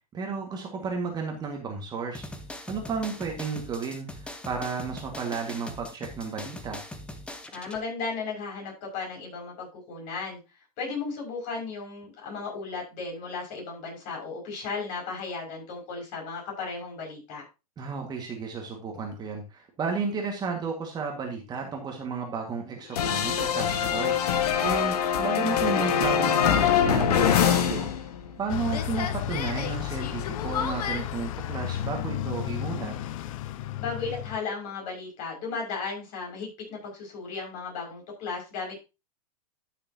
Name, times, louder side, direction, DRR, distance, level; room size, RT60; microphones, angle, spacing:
voice 1, 0.1-2.3 2.7-6.8 17.8-27.9 28.4-32.9, right 5 dB, 20° right, 2 dB, 1.8 m, -33 dB
sound 1, 2.1-7.8, left 1 dB, 5° left, 0.9 m, -41 dB
voice 2, 7.5-10.4 10.8-17.4 33.8-38.8, left 4 dB, 40° left, -1 dB, 5.8 m, -35 dB
sound 2, 22.9-28.4 28.7-31.0, left 8 dB, 75° left, 1.5 m, -24 dB
Bus, 28.5-34.4, left 12 dB, 55° left, 0.7 m, -33 dB
12.5 x 6.9 x 2.8 m, 0.27 s
hypercardioid pair, 140°, 20 cm